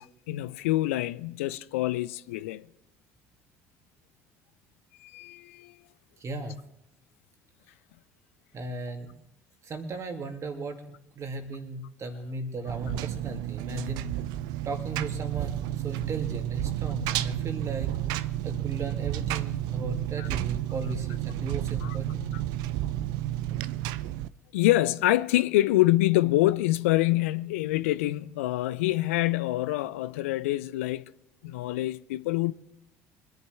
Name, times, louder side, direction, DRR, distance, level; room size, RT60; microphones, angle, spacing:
voice 1, 0.0-2.7 5.0-5.8 20.2-20.3 21.8-22.0 24.5-31.1 31.4-32.5, left 16 dB, 75° left, 0.4 m, -26 dB
voice 2, 6.2-6.6 8.5-9.1 9.6-10.8 11.1-14.2 14.6-18.0 18.4-22.3, right 2 dB, 45° right, 2.2 m, -36 dB
Engine, 12.7-24.3, right 14 dB, 65° right, 0.5 m, -31 dB
23.5 x 11.0 x 3.5 m
hypercardioid pair, 55°, 7 cm